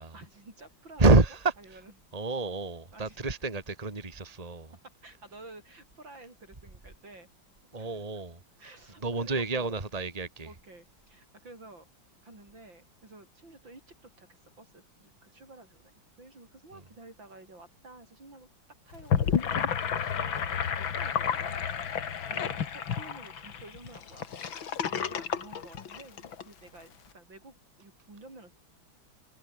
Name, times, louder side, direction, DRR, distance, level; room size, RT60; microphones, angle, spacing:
voice 1, 0.1-1.1 1.6-1.8 2.9-3.2 4.8-7.3 7.8-8.0 8.6-9.8 10.5-11.9 12.2-18.5 18.8-24.4 24.9-28.5, right 2 dB, 75° right, 8.1 m, -51 dB
voice 2, 1.0-1.8 2.1-4.7 7.7-8.4 8.7-8.8 9.0-10.5 16.7-16.8 22.3-22.5 24.9-25.1, right 3 dB, 20° right, 2.4 m, -28 dB
Gurgling / Sink (filling or washing), 18.9-26.4, left 8 dB, 85° left, 2.5 m, -31 dB
omnidirectional pair, 2.1 m